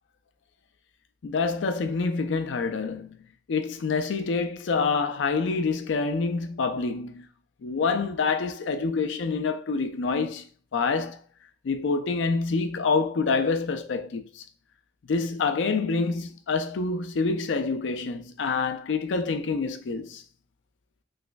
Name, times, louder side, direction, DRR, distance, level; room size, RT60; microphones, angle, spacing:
voice 1, 1.2-3.2 3.5-7.3 7.6-11.2 11.6-14.4 15.1-20.2, left 4 dB, 75° left, 0.4 m, -27 dB
3.2 x 3.0 x 2.5 m
head